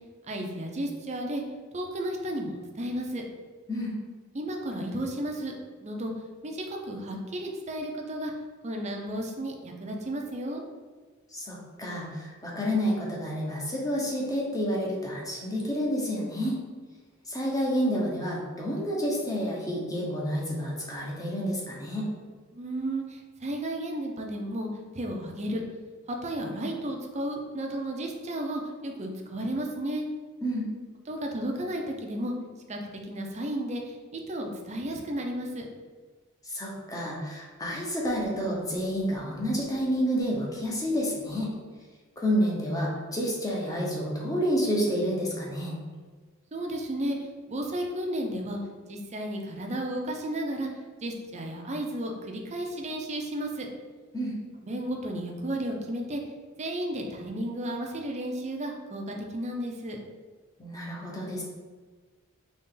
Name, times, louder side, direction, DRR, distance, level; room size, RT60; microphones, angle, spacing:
voice 1, 0.3-1.4 1.7-3.2 4.3-5.5 5.8-6.1 6.4-8.3 8.6-10.6 22.5-24.7 24.9-25.6 26.1-30.0 31.1-32.3 32.7-35.6 46.5-48.6 48.9-50.7 51.0-53.7 54.6-56.2 56.6-60.0, right 1 dB, 35° right, 1 dB, 0.6 m, -33 dB
voice 2, 11.3-16.6 17.3-22.1 30.4-30.7 36.4-41.5 42.2-45.8 54.1-54.4 60.6-61.4, equal, 15° left, -3 dB, 0.9 m, -29 dB
4.1 x 3.1 x 3.7 m, 1.4 s
head